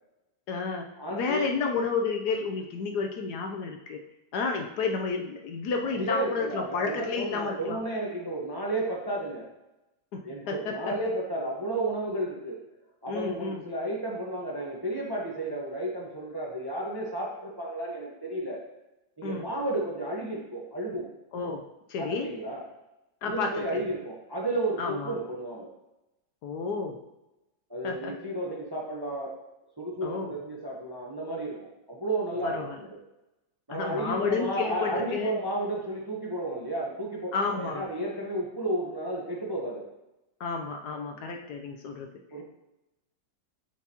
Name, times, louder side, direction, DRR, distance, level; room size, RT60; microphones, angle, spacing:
voice 1, 0.5-4.0 4.3-7.8 10.1-10.6 13.1-13.6 19.2-19.5 21.3-21.6 21.9-22.3 23.2-23.8 24.8-25.2 26.4-27.0 27.8-28.2 30.0-30.3 32.4-32.8 33.7-35.4 37.3-37.8 40.4-42.1, left 4 dB, 70° left, 3 dB, 1.1 m, -31 dB
voice 2, 1.0-1.5 6.0-9.5 10.2-12.6 13.0-18.6 19.2-21.1 22.0-22.6 23.2-25.7 27.7-29.3 29.8-31.6 31.9-33.0 33.7-39.9 42.3-42.4, right 1 dB, 20° right, -3 dB, 0.7 m, -32 dB
7.9 x 4.6 x 2.9 m, 0.95 s
omnidirectional pair, 1.9 m